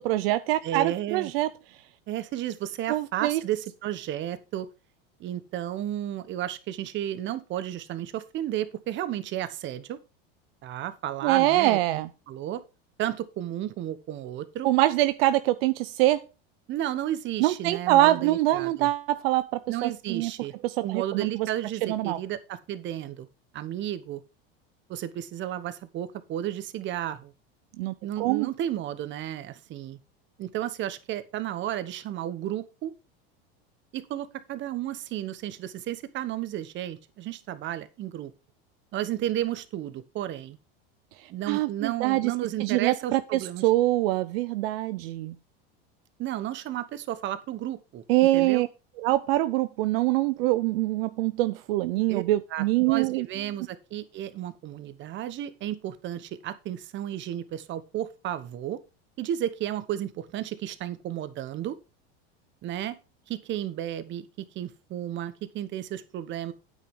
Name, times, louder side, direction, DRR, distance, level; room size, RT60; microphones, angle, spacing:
voice 1, 0.0-1.5 2.9-3.4 11.2-12.1 14.6-16.2 17.4-20.3 20.6-21.5 21.9-22.2 27.8-28.5 41.5-42.3 42.6-45.3 48.1-48.7 49.0-53.3, right 16 dB, 70° right, 13 dB, 0.6 m, -24 dB
voice 2, 0.6-1.3 2.1-4.7 5.2-10.0 10.6-12.6 13.0-14.7 16.7-18.9 19.7-20.5 20.8-23.3 23.5-24.2 24.9-27.3 28.0-30.0 30.4-32.9 33.9-38.3 38.9-40.6 41.3-43.7 46.2-48.0 48.3-48.7 52.1-52.2 52.5-58.8 59.2-61.8 62.6-63.0 63.3-66.5, right 12 dB, 40° right, 13 dB, 1.2 m, -33 dB
9.1 x 8.6 x 3.7 m, 0.29 s
supercardioid pair, 130°, 30 cm